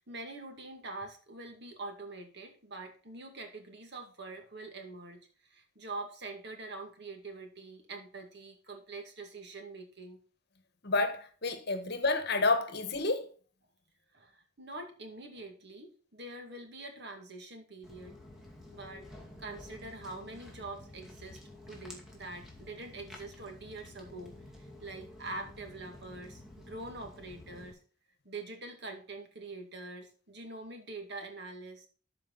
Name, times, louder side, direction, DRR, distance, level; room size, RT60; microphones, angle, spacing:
voice 1, 0.0-10.2 14.1-18.2 18.7-19.1 19.4-21.4 21.7-24.3 24.6-27.8 28.2-31.9, right 2 dB, 60° right, 2.2 m, -44 dB
voice 2, 10.8-13.3, left 3 dB, 55° left, 1.4 m, -29 dB
Walk footsteps, 17.8-27.7, left 1 dB, 5° right, 2.2 m, -51 dB
12.5 x 5.1 x 4.0 m
head